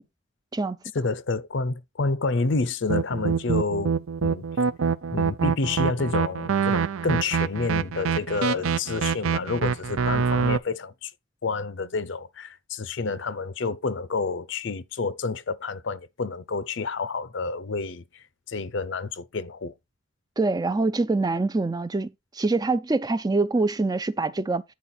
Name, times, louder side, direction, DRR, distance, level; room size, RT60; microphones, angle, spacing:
voice 1, 0.9-3.9 4.2-4.4 5.1-11.1 11.4-19.7, left 3 dB, 60° left, 0.6 m, -29 dB
sound 1, 2.9-10.6, right 6 dB, 80° right, 0.5 m, -25 dB
voice 2, 20.4-24.6, right 3 dB, 20° right, 0.3 m, -25 dB
9.4 x 4.7 x 4.2 m
head